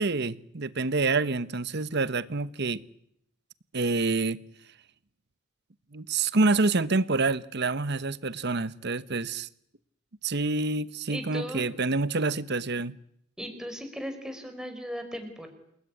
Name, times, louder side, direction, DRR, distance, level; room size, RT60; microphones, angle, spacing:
voice 1, 0.0-2.8 3.7-4.4 5.9-9.5 10.2-13.0, right 3 dB, 55° right, 1.1 m, -27 dB
voice 2, 11.1-11.7 13.4-15.5, equal, 5° right, 4.8 m, -37 dB
28.5 x 20.0 x 9.8 m
head